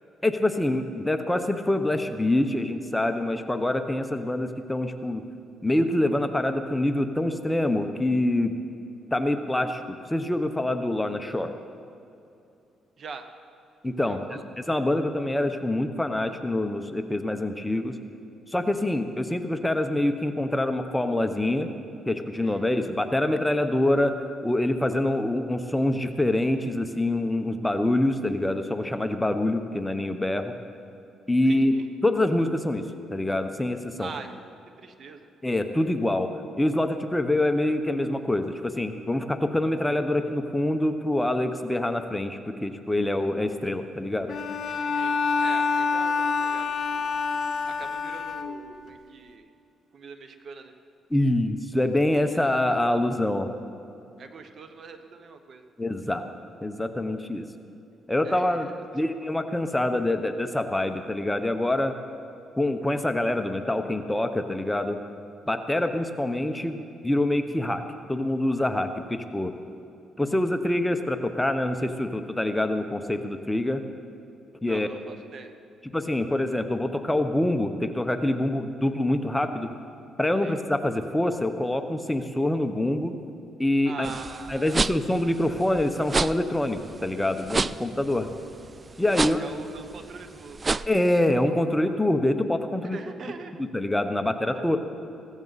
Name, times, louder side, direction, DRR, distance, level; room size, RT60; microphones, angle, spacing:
voice 1, 0.2-5.2 5.6-8.5 9.1-11.5 13.8-18.0 18.5-21.7 22.1-24.2 24.4-30.5 31.3-31.7 32.0-32.8 33.1-34.1 35.4-36.3 36.6-44.3 51.1-53.5 55.8-56.2 56.6-57.5 58.1-58.7 58.9-61.9 62.6-65.0 65.5-67.8 68.1-69.5 70.2-73.8 74.6-74.9 75.9-79.7 80.2-83.1 83.6-84.1 84.5-88.3 89.0-89.4 90.8-93.0 93.6-94.8, left 1 dB, 10° left, 7 dB, 0.9 m, -25 dB
voice 2, 13.0-13.3 14.1-14.4 22.3-22.6 31.4-31.9 34.0-34.3 34.8-35.3 45.0-47.1 47.7-49.5 49.9-50.7 54.2-55.6 58.2-59.1 74.6-75.5 80.4-80.6 83.8-84.8 89.0-90.6 92.8-93.6 94.5-94.8, right 5 dB, 55° right, 8 dB, 1.0 m, -43 dB
Bowed string instrument, 44.3-48.9, left 5 dB, 55° left, 0.9 m, -27 dB
sound 1, 84.0-90.9, right 3 dB, 30° right, 0.3 m, -30 dB
16.0 x 14.5 x 4.1 m, 2.6 s
cardioid pair, 90°, 0 cm